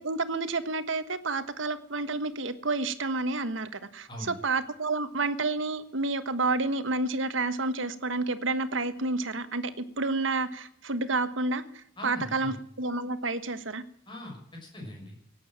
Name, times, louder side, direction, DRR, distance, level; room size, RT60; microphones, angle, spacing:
voice 1, 0.0-13.8, right 3 dB, 70° right, 12 dB, 1.3 m, -30 dB
voice 2, 12.0-12.6 14.1-15.2, left 1 dB, 25° left, 0 dB, 6.0 m, -40 dB
17.5 x 9.4 x 7.5 m, 0.67 s
head